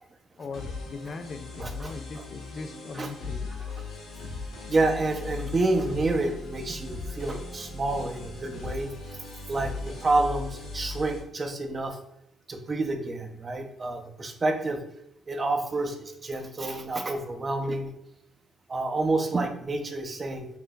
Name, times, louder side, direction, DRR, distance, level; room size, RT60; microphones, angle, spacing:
voice 1, 0.4-3.5, left 4 dB, 50° left, 8 dB, 0.4 m, -40 dB
sound 1, 0.5-11.2, left 3 dB, 80° left, 1.1 m, -38 dB
voice 2, 1.6-1.9 3.0-3.1 4.7-8.9 9.5-12.0 12.5-14.8 15.3-17.9 18.7-20.5, right 2 dB, 35° right, 5 dB, 0.5 m, -28 dB
5.7 x 2.5 x 2.2 m, 0.75 s
cardioid pair, 90°, 0 cm